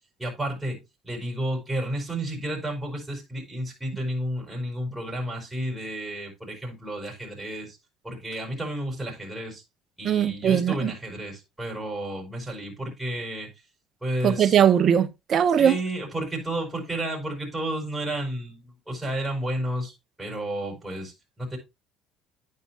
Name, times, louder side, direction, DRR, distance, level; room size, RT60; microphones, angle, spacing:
voice 1, 0.2-7.8 8.0-9.6 10.0-13.5 14.0-14.6 15.6-21.6, right 1 dB, 5° right, 5.7 m, -32 dB
voice 2, 10.0-10.9 14.2-15.8, right 9 dB, 45° right, 1.2 m, -20 dB
9.9 x 9.2 x 3.0 m
cardioid pair, 110°, 0 cm